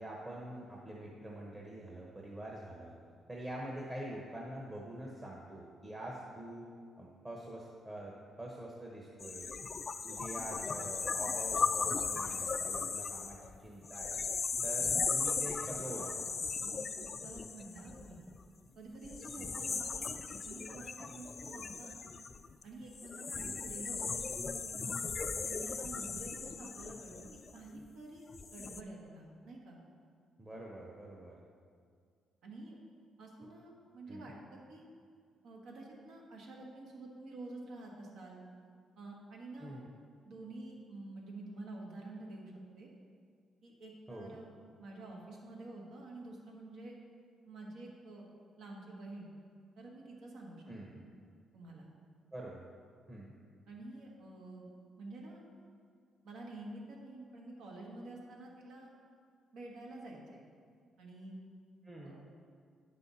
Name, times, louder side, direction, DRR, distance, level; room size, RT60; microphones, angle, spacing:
voice 1, 0.0-2.9 3.3-6.7 7.0-9.6 10.1-14.2 14.6-16.4 19.3-19.5 23.3-23.6 30.4-31.4 33.4-33.5 34.1-34.3 39.6-39.9 44.1-44.4 50.7-51.0 52.3-52.6 53.1-53.3 61.8-62.2, right 1 dB, 20° right, -3 dB, 1.0 m, -45 dB
sound 1, 9.2-18.4 19.0-27.8 28.3-28.8, left 5 dB, 40° left, 0.4 m, -37 dB
voice 2, 16.6-18.2 18.7-22.0 22.6-25.1 25.4-29.8 32.4-32.8 33.2-34.8 35.4-38.4 39.0-39.7 40.2-42.9 43.6-44.5 44.8-47.0 47.5-48.3 48.6-49.3 49.8-50.6 51.5-51.9 53.7-54.7 55.0-55.4 56.2-58.9 59.5-60.4 61.0-61.4 62.0-62.2, right 2 dB, 75° right, -2 dB, 1.5 m, -49 dB
9.5 x 5.6 x 4.1 m, 2.2 s
cardioid pair, 90°, 0 cm